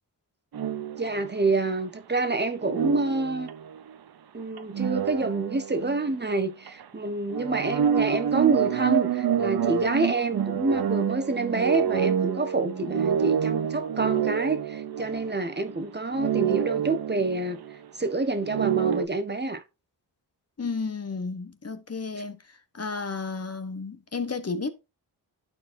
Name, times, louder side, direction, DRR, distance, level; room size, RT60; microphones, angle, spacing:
sound 1, 0.5-1.5 2.6-3.9 4.6-6.4 6.7-6.8 7.3-15.8 16.1-17.8 18.4-19.1, right 8 dB, 55° right, 0.8 m, -27 dB
voice 1, 1.0-3.5 4.3-17.6 18.0-19.6, right 3 dB, 25° right, 1.3 m, -27 dB
voice 2, 20.6-22.4 22.7-24.7, left 4 dB, 35° left, 1.2 m, -32 dB
12.0 x 4.5 x 2.7 m
cardioid pair, 55°, 44 cm